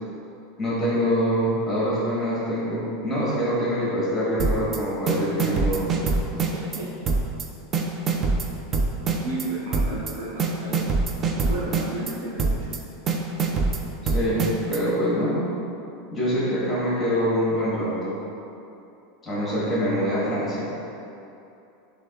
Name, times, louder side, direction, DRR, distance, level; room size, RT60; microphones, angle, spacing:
voice 1, 0.6-5.8 14.0-15.4 16.1-18.2 19.2-20.7, equal, 15° left, -8 dB, 1.3 m, -25 dB
sound 1, 4.4-4.8 5.1-6.8 7.1-7.4 7.7-9.4 9.7-10.1 10.4-12.1 12.4-12.8 13.1-14.8, right 4 dB, 25° right, 0.3 m, -24 dB
voice 2, 6.5-7.2 9.2-10.8 11.4-12.7, right 2 dB, 80° right, -4 dB, 0.9 m, -33 dB
7.7 x 2.6 x 2.5 m, 2.7 s
supercardioid pair, 155°, 0 cm